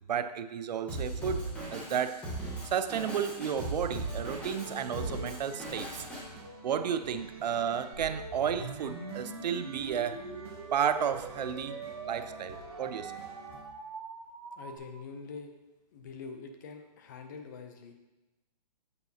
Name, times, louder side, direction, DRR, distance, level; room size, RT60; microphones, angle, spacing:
voice 1, 0.1-2.3 2.7-6.0 6.6-10.2 10.7-11.8 12.1-13.1, right 8 dB, 75° right, 12 dB, 0.5 m, -32 dB
Drum kit, 0.9-6.2, right 2 dB, 5° left, 1.1 m, -38 dB
sound 1, 3.9-13.6, right 1 dB, 40° right, 1.0 m, -47 dB
sound 2, 7.9-14.8, right 5 dB, 60° right, 1.0 m, -43 dB
voice 2, 14.6-15.5 15.9-17.9, left 4 dB, 25° left, 5 dB, 0.5 m, -44 dB
8.2 x 4.7 x 2.8 m, 1.0 s
hypercardioid pair, 165°, 21 cm